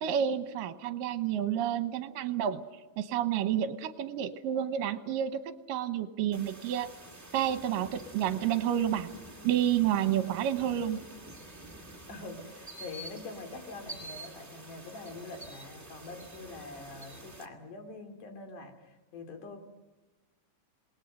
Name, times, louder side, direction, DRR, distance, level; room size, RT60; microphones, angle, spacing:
voice 1, 0.0-2.6 3.0-6.9 7.3-9.1 9.4-11.0, right 10 dB, 80° right, 10 dB, 2.6 m, -30 dB
sound 1, 6.3-17.4, right 1 dB, 10° right, 1.2 m, -48 dB
voice 2, 12.1-19.6, left 3 dB, 65° left, 5 dB, 4.1 m, -45 dB
27.5 x 20.0 x 6.7 m, 1.2 s
omnidirectional pair, 4.0 m